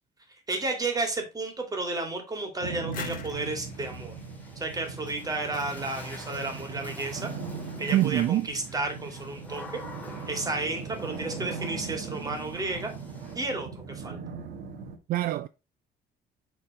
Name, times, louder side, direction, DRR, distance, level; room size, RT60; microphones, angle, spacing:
voice 1, 0.5-4.1 4.6-7.3 7.8-9.8 10.3-12.9 13.3-14.2, right 2 dB, 20° right, 2.5 m, -32 dB
sound 1, 2.6-15.0, right 5 dB, 80° right, 1.5 m, -39 dB
sound 2, 2.9-5.6, left 7 dB, 55° left, 1.3 m, -45 dB
Water / Splash splatter, 3.3-13.3, left 2 dB, 10° left, 2.3 m, -47 dB
voice 2, 7.9-8.5 15.1-15.5, right 14 dB, 60° right, 0.4 m, -24 dB
6.8 x 4.0 x 4.1 m
cardioid pair, 110°, 17 cm